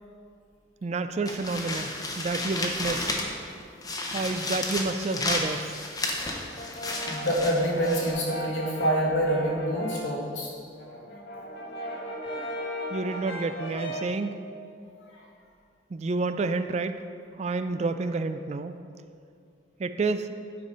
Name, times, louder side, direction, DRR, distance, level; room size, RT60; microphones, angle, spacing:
voice 1, 0.8-3.3 4.1-5.8 12.9-14.4 15.9-16.9 17.4-18.8 19.8-20.3, right 3 dB, 35° right, 10 dB, 0.3 m, -29 dB
sound 1, 1.2-3.5 3.8-8.1, left 2 dB, 20° left, 0.8 m, -32 dB
Brass instrument, 6.6-10.2 10.6-14.2, equal, 60° left, 1.3 m, -36 dB
voice 2, 7.1-10.5 15.1-15.2, equal, 85° left, -4 dB, 2.0 m, -27 dB
9.6 x 5.0 x 5.4 m, 2.3 s
head